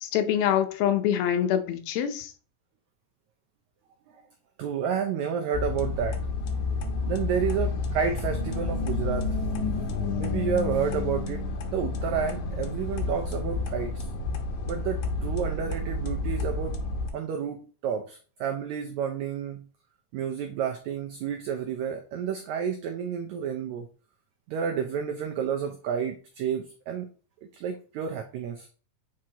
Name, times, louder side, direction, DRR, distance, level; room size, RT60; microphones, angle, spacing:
voice 1, 0.0-2.3, left 10 dB, 85° left, 2.6 m, -25 dB
voice 2, 4.6-6.3 7.1-9.3 10.2-11.4 11.7-14.1 14.6-16.7 17.1-19.7 20.1-23.8 24.5-27.1 27.5-28.7, right 7 dB, 90° right, 1.6 m, -30 dB
sound 1, 5.5-17.1, left 3 dB, 70° left, 2.0 m, -30 dB
7.3 x 4.6 x 2.9 m
omnidirectional pair, 4.1 m